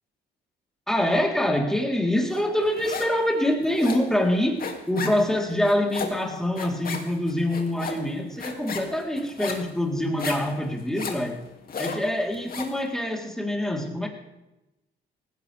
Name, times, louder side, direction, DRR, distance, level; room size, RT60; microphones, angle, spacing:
voice 1, 0.9-11.4 11.8-14.1, left 1 dB, ahead, 0 dB, 3.6 m, -25 dB
sound 1, 2.3-3.2 3.5-12.8, left 5 dB, 45° left, 2.5 m, -35 dB
19.0 x 16.5 x 3.5 m, 0.98 s
cardioid pair, 90°, 20 cm